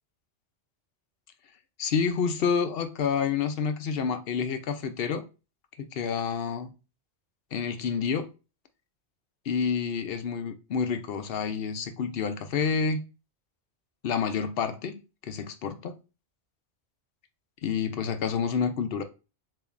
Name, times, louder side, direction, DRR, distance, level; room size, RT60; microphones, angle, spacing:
voice 1, 1.8-5.2 5.8-6.7 7.5-8.3 9.5-13.0 14.0-16.0 17.6-19.0, left 6 dB, 65° left, 0.8 m, -29 dB
6.9 x 2.9 x 2.5 m
omnidirectional pair, 1.1 m